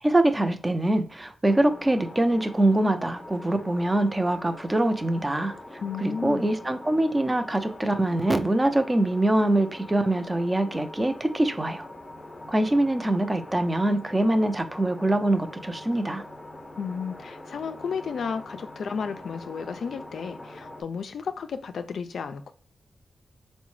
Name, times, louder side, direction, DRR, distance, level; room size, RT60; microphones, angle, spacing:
voice 1, 0.0-5.5 6.0-11.8 12.5-16.2, right 1 dB, 20° right, 0.5 m, -24 dB
sound 1, 1.5-20.8, left 1 dB, 25° left, 0.7 m, -43 dB
voice 2, 5.8-6.5 16.8-22.5, left 6 dB, 75° left, 0.3 m, -33 dB
3.7 x 2.1 x 3.1 m
cardioid pair, 65°, 0 cm